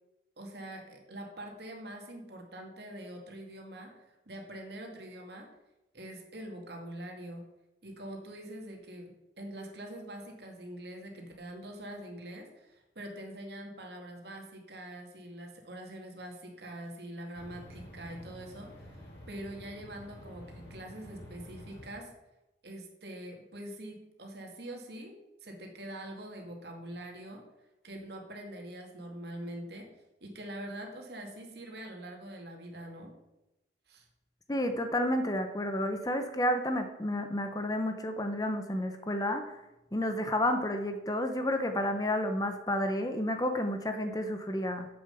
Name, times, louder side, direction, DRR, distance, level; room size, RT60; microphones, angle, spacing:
voice 1, 0.4-5.5 5.9-7.4 7.8-9.0 9.4-22.1 22.6-25.1 25.4-27.4 27.8-29.9 30.2-33.1 33.9-34.1, right 1 dB, 60° right, 1 dB, 2.2 m, -44 dB
sound 1, 17.3-21.9, equal, 65° left, 3.3 m, -49 dB
voice 2, 34.5-39.6 39.9-44.9, left 1 dB, 20° left, 7 dB, 0.7 m, -31 dB
7.9 x 7.2 x 7.0 m, 0.95 s
head